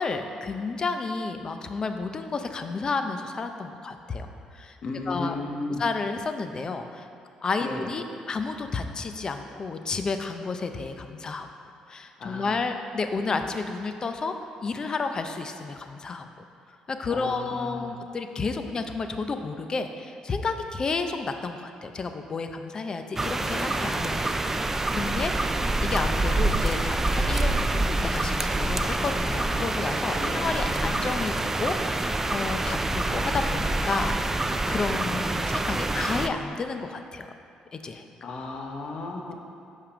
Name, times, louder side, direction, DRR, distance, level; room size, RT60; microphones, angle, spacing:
voice 1, 0.0-4.8 5.1-5.4 5.8-7.1 7.4-11.5 11.9-14.3 14.6-16.3 16.9-25.3 25.8-34.2 34.7-37.3 37.7-38.0, left 4 dB, 35° left, 7 dB, 0.5 m, -31 dB
voice 2, 4.8-5.8 7.6-7.9 12.2-12.5 17.1-18.0 30.2-30.5 38.2-39.3, left 2 dB, 55° left, 2 dB, 1.0 m, -34 dB
sound 1, 23.2-36.3, right 2 dB, 15° right, 0.4 m, -26 dB
6.6 x 5.8 x 5.0 m, 2.5 s
cardioid pair, 105°, 2 cm